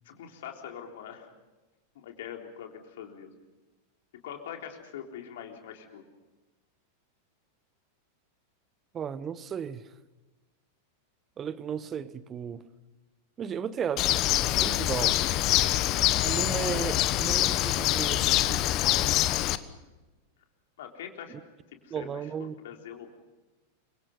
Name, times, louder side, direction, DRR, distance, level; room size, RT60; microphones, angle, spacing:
voice 1, 0.0-1.3 2.0-3.3 4.2-6.0 20.8-21.3 21.8-23.1, left 9 dB, 55° left, 3.8 m, -43 dB
voice 2, 8.9-9.8 11.4-12.6 13.4-14.2 14.6-15.2 16.2-18.8 21.3-21.4 21.9-22.5, right 8 dB, 25° right, 1.2 m, -35 dB
Bird, 14.0-19.6, left 14 dB, 40° left, 1.2 m, -25 dB
29.5 x 25.0 x 5.4 m
figure-of-eight pair, 90°, 0 cm